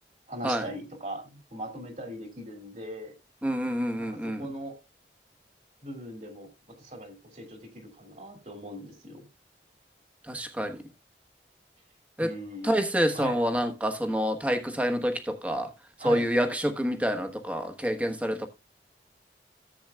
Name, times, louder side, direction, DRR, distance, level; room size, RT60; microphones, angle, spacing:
voice 1, 0.3-3.1 4.0-4.8 5.8-9.3 12.2-12.7 13.1-13.4 16.0-16.3, right 1 dB, 40° right, 2.4 m, -40 dB
voice 2, 3.4-4.4 10.3-10.8 12.2-12.3 12.6-15.7 16.0-18.5, equal, 10° right, 1.1 m, -27 dB
14.0 x 8.0 x 2.3 m
head